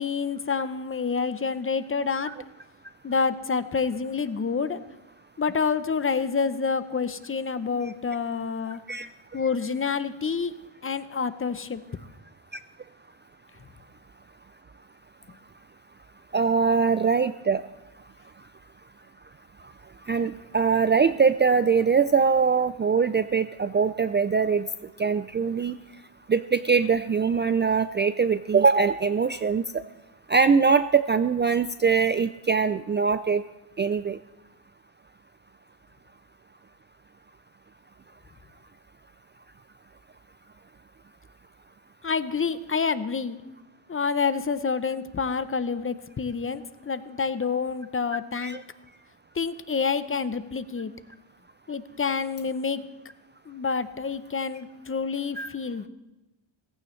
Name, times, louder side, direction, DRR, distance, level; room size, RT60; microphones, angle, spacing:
voice 1, 0.0-2.3 3.0-4.8 5.4-8.8 9.3-10.5 10.8-11.8 42.0-43.4 43.9-48.6 49.3-50.9 51.7-52.8 53.5-55.9, left 5 dB, 30° left, 12 dB, 0.7 m, -28 dB
voice 2, 16.3-17.6 20.1-24.7 25.0-25.8 26.3-29.8 30.3-33.4 33.8-34.2 48.4-48.6 55.4-55.5, right 5 dB, 25° right, 12 dB, 0.3 m, -22 dB
17.5 x 15.5 x 3.2 m, 0.97 s
cardioid pair, 95°, 46 cm